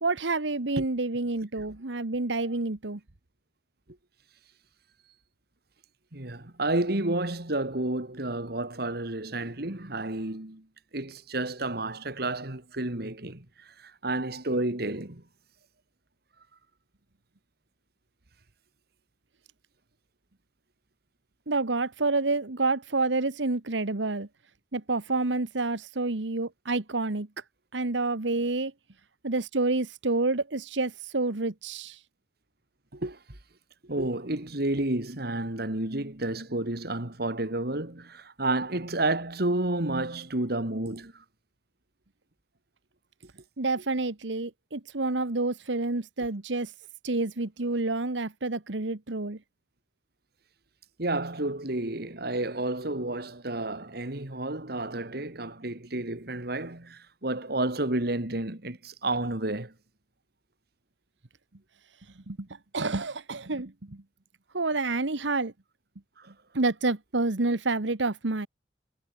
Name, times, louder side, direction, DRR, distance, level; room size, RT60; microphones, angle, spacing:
voice 1, 0.0-3.0 21.5-24.3 24.7-27.3 27.7-28.7 29.2-32.0 43.6-46.7 47.0-49.4 62.3-64.0 64.5-65.5 66.5-68.5, right 3 dB, 90° right, 1.4 m, -28 dB
voice 2, 6.1-10.7 10.9-15.2 32.9-33.4 33.8-41.2 51.0-59.7 66.2-66.3, right 2 dB, 60° right, 2.5 m, -31 dB
head